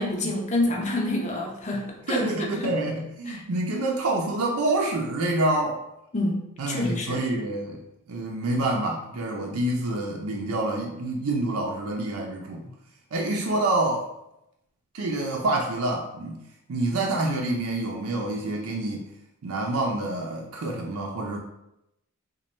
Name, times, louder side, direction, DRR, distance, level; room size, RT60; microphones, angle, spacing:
voice 1, 0.0-2.7 3.3-3.4 6.1-7.2, left 1 dB, 35° left, 0 dB, 0.6 m, -28 dB
voice 2, 2.1-5.8 6.6-7.8 8.1-12.6 13.1-14.1 14.9-16.4 16.7-19.1 19.4-21.4, right 2 dB, 75° right, -1 dB, 0.5 m, -27 dB
3.1 x 2.2 x 4.1 m, 0.85 s
head